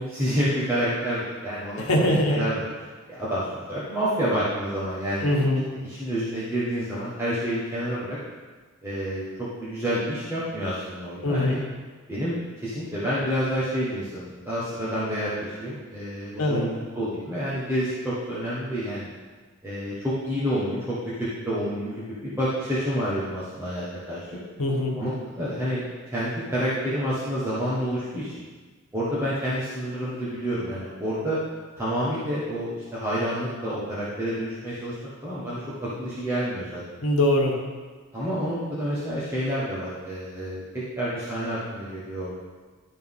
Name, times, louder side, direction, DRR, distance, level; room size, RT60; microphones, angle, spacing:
voice 1, 0.0-1.8 2.3-2.6 3.1-5.4 5.8-8.2 8.8-11.6 12.1-19.1 19.6-24.3 24.9-25.1 25.4-28.3 28.9-31.4 31.8-35.0 35.2-36.8 38.1-40.6 41.0-42.3, equal, 10° right, -10 dB, 1.3 m, -28 dB
voice 2, 1.8-2.4 5.2-5.6 11.2-11.6 16.4-16.7 24.6-25.0 37.0-37.6, left 1 dB, 80° left, 0 dB, 1.3 m, -22 dB
11.5 x 4.3 x 3.7 m, 1.4 s
head